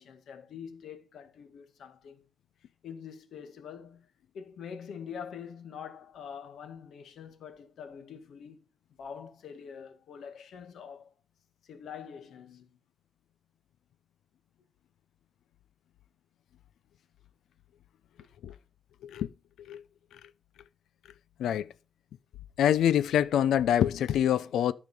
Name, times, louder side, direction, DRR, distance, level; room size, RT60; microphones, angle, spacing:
voice 1, 0.0-2.3 2.8-4.1 4.3-8.7 9.0-11.1 11.6-12.8 18.2-18.3, left 7 dB, 60° left, 1.9 m, -45 dB
voice 2, 21.4-21.7 22.6-24.7, left 10 dB, 80° left, 0.6 m, -25 dB
13.0 x 5.2 x 5.6 m
wide cardioid pair, 175°, 0 cm